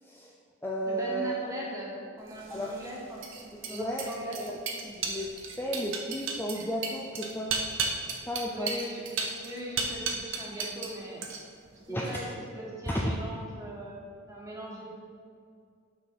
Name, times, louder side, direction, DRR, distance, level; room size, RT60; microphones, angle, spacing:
voice 1, 0.0-0.3 0.6-1.4 2.5-2.8 3.7-4.1 4.4-5.3 5.6-7.5 8.3-8.8 11.9-12.2 12.9-13.1, equal, 10° left, -3 dB, 0.5 m, -33 dB
voice 2, 0.9-3.2 3.6-4.4 8.5-9.0 9.4-11.2 11.9-12.3 12.5-14.0 14.3-15.0, equal, 15° right, -4 dB, 1.4 m, -39 dB
sound 1, 2.4-10.9 11.2-11.7, right 4 dB, 65° right, 0.8 m, -34 dB
6.1 x 6.0 x 5.2 m, 2.3 s
head